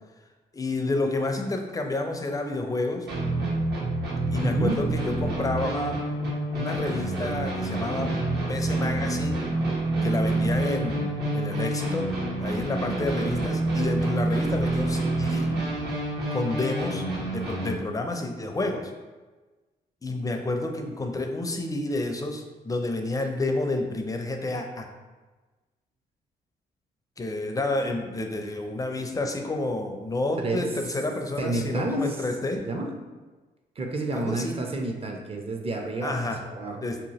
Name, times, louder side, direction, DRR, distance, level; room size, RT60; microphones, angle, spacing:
voice 1, 0.5-3.1 4.3-6.0 6.5-8.2 8.5-9.4 10.0-12.1 12.4-15.5 16.3-17.0 17.3-18.9 20.0-24.9 27.2-32.6 34.1-34.6 36.0-36.4 36.8-37.0, left 2 dB, 20° left, 4 dB, 0.4 m, -29 dB
sound 1, 3.1-17.7, right 2 dB, 60° right, 0.9 m, -27 dB
voice 2, 4.4-4.8 30.4-30.7 31.4-32.2 32.7-32.9 33.8-36.2 36.4-36.8, right 2 dB, 30° right, 2 dB, 0.5 m, -29 dB
2.9 x 2.3 x 2.9 m, 1.3 s
supercardioid pair, 60°, 18 cm